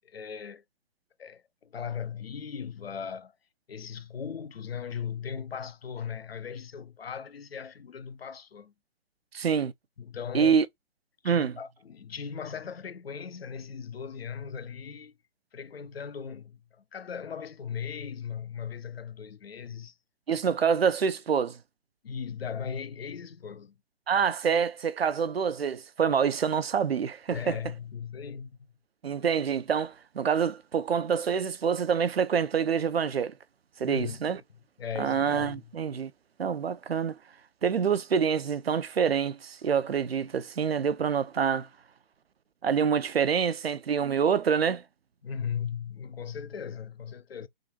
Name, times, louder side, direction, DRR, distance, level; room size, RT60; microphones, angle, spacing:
voice 1, 0.0-0.6 1.2-3.3 3.7-8.7 10.0-10.6 11.2-15.1 15.5-16.6 16.9-19.9 22.0-23.7 27.3-28.7 33.9-34.2 34.8-35.7 45.2-47.5, left 7 dB, 70° left, 0.7 m, -38 dB
voice 2, 9.3-9.7 10.3-10.7 11.2-11.5 20.3-21.6 24.1-27.6 29.0-33.3 33.8-34.4 35.0-36.1 36.4-37.1 37.6-41.7 42.6-44.8, right 7 dB, 70° right, 0.7 m, -26 dB
3.8 x 2.5 x 4.5 m
figure-of-eight pair, 135°, 31 cm